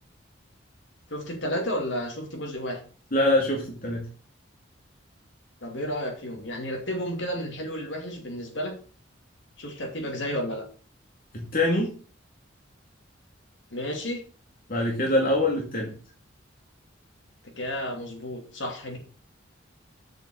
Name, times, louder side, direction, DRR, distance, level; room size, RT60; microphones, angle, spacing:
voice 1, 1.1-2.8 5.6-8.7 9.6-10.6 13.7-14.2 17.6-19.0, equal, 65° left, 2 dB, 2.8 m, -32 dB
voice 2, 3.1-4.1 11.3-11.9 14.7-15.9, left 1 dB, 45° left, -1 dB, 2.3 m, -24 dB
7.2 x 6.1 x 6.2 m, 0.38 s
head